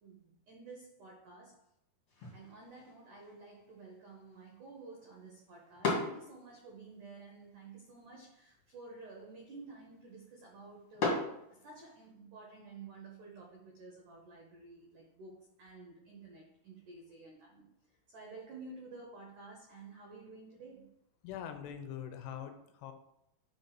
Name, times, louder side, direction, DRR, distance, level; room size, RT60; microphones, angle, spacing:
voice 1, 0.0-1.6 2.3-17.7 18.1-20.9, right 3 dB, 75° right, 0 dB, 1.8 m, -52 dB
sound 1, 2.1-12.1, left 3 dB, 40° left, 2.1 m, -42 dB
voice 2, 21.2-22.9, left 9 dB, 80° left, 8 dB, 2.8 m, -43 dB
5.3 x 5.3 x 5.9 m, 0.79 s
omnidirectional pair, 5.0 m